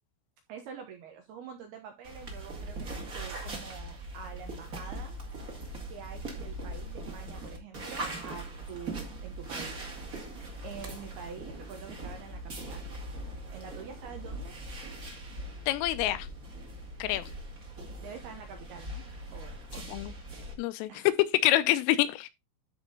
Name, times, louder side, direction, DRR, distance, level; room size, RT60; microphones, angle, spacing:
voice 1, 0.5-5.2 5.9-10.0 10.6-12.8 13.5-14.6 18.0-19.0 19.3-19.9 20.9-21.1, right 7 dB, 75° right, 2.5 m, -46 dB
sound 1, 2.0-20.5, right 1 dB, 90° right, 0.7 m, -41 dB
voice 2, 15.7-16.3 17.0-17.2 19.9-20.1 20.6-20.9 21.4-22.3, left 14 dB, 85° left, 3.3 m, -27 dB
13.0 x 4.6 x 3.8 m
omnidirectional pair, 5.9 m